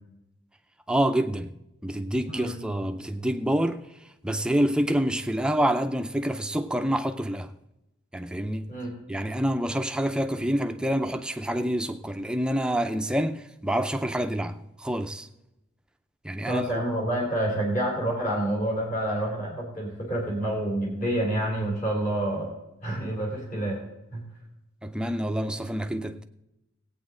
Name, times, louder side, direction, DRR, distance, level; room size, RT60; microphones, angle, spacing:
voice 1, 0.9-1.5 1.8-3.8 4.2-7.5 8.1-8.7 9.1-15.3 16.2-16.7 24.8-26.2, right 1 dB, 5° right, 0.4 m, -27 dB
voice 2, 16.5-22.5 22.8-23.8 24.1-24.2, right 1 dB, 40° left, 2.9 m, -28 dB
18.0 x 8.7 x 3.8 m
head